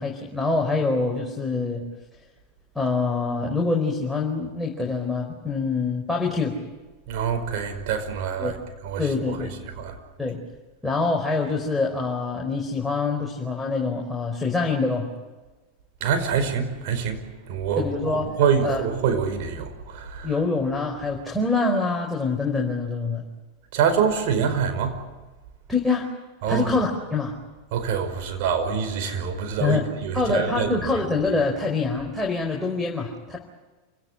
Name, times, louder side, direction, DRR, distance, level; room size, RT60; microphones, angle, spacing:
voice 1, 0.0-1.8 2.7-6.6 8.4-8.6 9.0-9.5 10.2-10.4 10.8-15.1 17.8-18.3 18.6-18.8 20.2-23.2 25.7-26.1 26.5-27.3 29.6-29.9 30.1-33.4, left 3 dB, 5° left, 4.5 m, -25 dB
voice 2, 7.1-8.6 8.8-9.4 9.6-10.0 16.0-17.2 17.5-20.3 23.7-25.0 26.4-26.7 27.7-30.9, right 7 dB, 55° right, 5.3 m, -25 dB
29.0 x 18.0 x 10.0 m
figure-of-eight pair, 90°, 0 cm